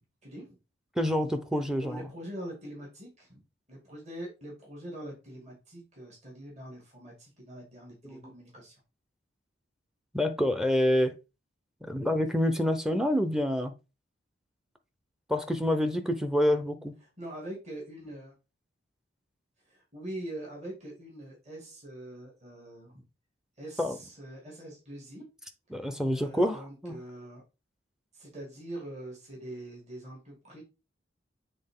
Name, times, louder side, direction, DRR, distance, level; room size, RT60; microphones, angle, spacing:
voice 1, 0.2-0.6 1.8-3.4 3.7-8.8 17.2-18.3 19.7-23.0 23.6-25.3 26.1-27.4 28.1-30.6, right 1 dB, 35° right, 2.3 m, -43 dB
voice 2, 1.0-2.1 8.0-8.3 10.1-11.1 11.8-13.7 15.3-16.9 23.8-24.0 25.7-27.0, left 1 dB, 5° right, 0.6 m, -27 dB
7.7 x 3.6 x 3.7 m
head